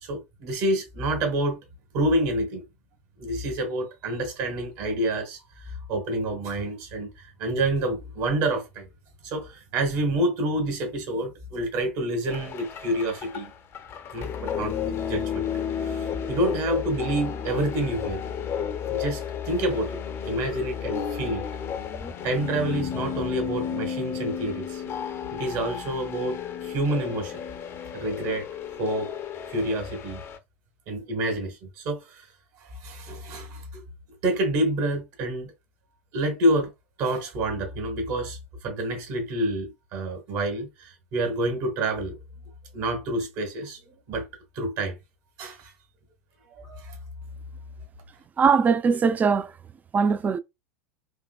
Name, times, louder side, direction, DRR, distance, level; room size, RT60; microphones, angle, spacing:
voice 1, 0.0-1.6 1.9-2.6 3.2-8.9 9.2-13.5 14.1-15.4 15.9-18.2 18.9-21.5 22.2-24.9 25.3-27.4 27.9-28.4 28.7-29.1 29.5-30.2 30.9-32.2 32.6-33.8 34.2-35.5 36.1-36.7 37.0-42.2 42.7-44.3 44.5-45.0 45.4-45.7 46.5-47.0, right 1 dB, 50° right, 1.5 m, -28 dB
sound 1, 12.3-30.4, left 8 dB, 35° left, 0.6 m, -32 dB
voice 2, 48.4-49.5 49.9-50.4, right 5 dB, 20° right, 0.3 m, -21 dB
3.7 x 2.8 x 2.3 m
hypercardioid pair, 90°, 7 cm